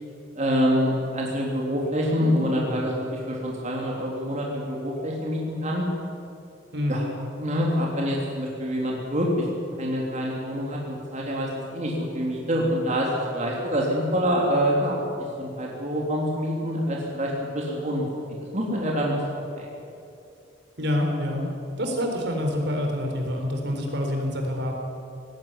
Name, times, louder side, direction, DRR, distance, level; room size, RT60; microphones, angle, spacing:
voice 1, 0.3-5.8 6.9-7.0 7.4-9.5 9.8-15.0 15.4-18.0 18.5-19.2 19.6-19.7, equal, 40° right, -2 dB, 3.2 m, -26 dB
voice 2, 2.0-2.9 6.7-7.0 20.8-21.5 21.8-24.8, left 1 dB, 65° right, 2 dB, 4.0 m, -27 dB
18.5 x 16.0 x 9.9 m, 2.6 s
head